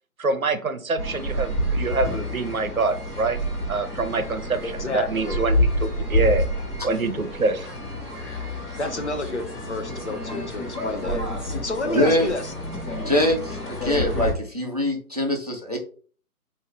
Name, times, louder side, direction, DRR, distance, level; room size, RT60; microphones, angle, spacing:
voice 1, 0.2-3.4 3.7-6.5 6.8-7.7, right 3 dB, 65° right, 9 dB, 0.8 m, -25 dB
sound 1, 1.0-14.3, equal, 20° left, 1.5 m, -28 dB
voice 2, 4.6-5.4 8.8-11.2 11.6-12.4, left 2 dB, 50° left, 5 dB, 0.7 m, -30 dB
voice 3, 11.9-12.3 13.1-15.8, left 1 dB, 25° right, 1 dB, 0.6 m, -23 dB
4.6 x 2.7 x 3.6 m, 0.41 s
figure-of-eight pair, 150°, 45 cm